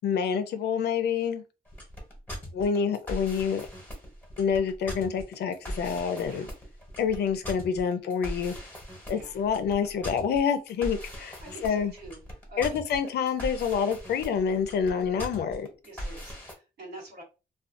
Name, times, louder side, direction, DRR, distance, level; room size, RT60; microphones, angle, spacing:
voice 1, 0.0-1.4 2.5-3.7 4.4-6.5 7.0-8.5 9.1-11.9 12.6-15.7, left 7 dB, 80° left, 0.4 m, -27 dB
sound 1, 1.7-16.5, equal, 10° left, 0.9 m, -40 dB
voice 2, 11.4-12.2 12.5-13.1 15.8-17.2, right 1 dB, 80° right, 1.3 m, -46 dB
2.4 x 2.3 x 2.5 m
cardioid pair, 125°, 17 cm